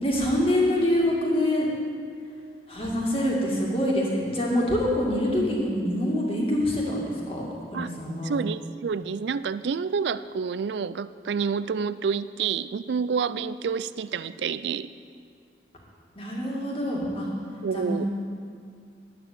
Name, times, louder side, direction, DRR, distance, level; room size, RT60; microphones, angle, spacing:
voice 1, 0.0-1.7 2.7-7.5 7.7-8.3 16.2-17.3 17.7-18.1, left 1 dB, 30° left, -3 dB, 2.2 m, -25 dB
voice 2, 8.2-14.9 17.6-18.0, right 6 dB, 75° right, 15 dB, 0.4 m, -28 dB
11.0 x 9.0 x 6.8 m, 2.2 s
head